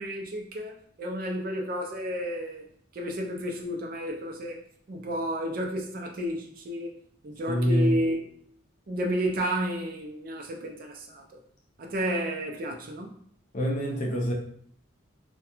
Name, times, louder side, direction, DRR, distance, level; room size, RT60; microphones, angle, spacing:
voice 1, 0.0-2.7 2.9-4.6 4.9-6.9 7.2-8.3 8.9-11.4 11.8-13.2, equal, 45° right, 2 dB, 0.4 m, -31 dB
voice 2, 7.5-7.9 13.5-14.3, equal, 40° left, -1 dB, 0.5 m, -25 dB
2.3 x 2.2 x 2.9 m, 0.63 s
head